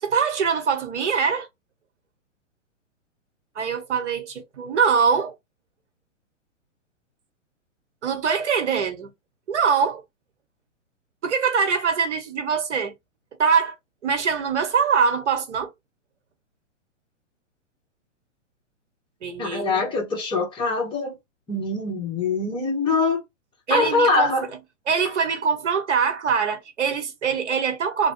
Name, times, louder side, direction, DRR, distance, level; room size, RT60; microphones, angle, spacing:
voice 1, 0.0-1.5 3.5-5.4 8.0-9.1 9.5-10.0 11.2-12.9 13.4-13.7 14.0-15.7 19.2-19.9 23.7-24.5 24.9-28.1, right 6 dB, 65° right, 1.1 m, -23 dB
voice 2, 19.4-21.2 21.5-23.2 23.7-24.5, left 3 dB, 15° left, 1.2 m, -23 dB
2.9 x 2.2 x 3.0 m
hypercardioid pair, 125°, 38 cm